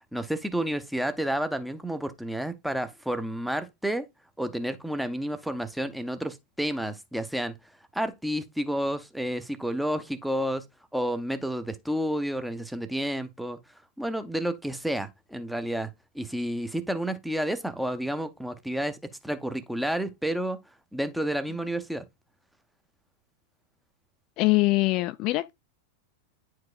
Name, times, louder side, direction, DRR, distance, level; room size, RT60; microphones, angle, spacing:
voice 1, 0.1-4.1 4.4-7.5 7.9-10.6 10.9-13.6 14.0-15.9 16.1-20.6 20.9-22.0, equal, ahead, 0.6 m, -30 dB
voice 2, 24.4-25.5, left 21 dB, 40° left, 0.3 m, -23 dB
9.3 x 4.7 x 2.4 m
figure-of-eight pair, 90°, 0 cm